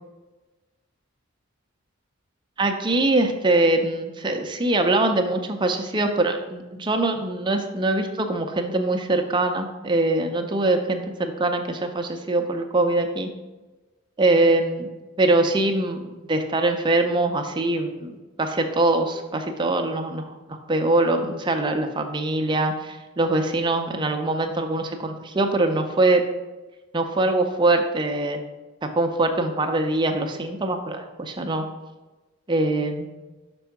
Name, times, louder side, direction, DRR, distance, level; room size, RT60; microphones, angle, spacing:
voice 1, 2.6-13.3 14.2-14.9 15.2-26.2 26.9-28.4 28.8-31.6 32.5-33.1, right 2 dB, 20° right, 5 dB, 0.5 m, -23 dB
6.0 x 3.6 x 4.5 m, 1.2 s
head